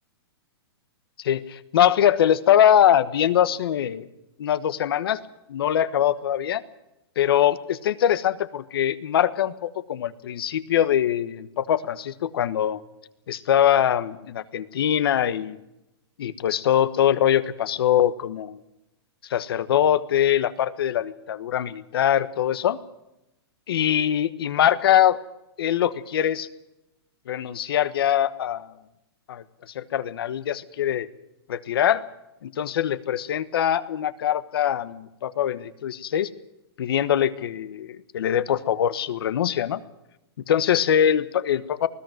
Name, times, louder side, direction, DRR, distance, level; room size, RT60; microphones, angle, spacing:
voice 1, 1.2-4.1 4.4-5.2 5.5-6.6 7.2-12.8 13.3-15.6 16.2-18.6 19.3-22.8 23.7-25.2 25.6-26.5 27.3-28.7 29.3-29.4 29.7-31.1 31.5-32.1 32.4-36.3 36.8-39.8 40.4-41.9, left 10 dB, 65° left, 15 dB, 1.3 m, -22 dB
20.0 x 14.5 x 9.2 m, 0.91 s
hypercardioid pair, 160°, 14 cm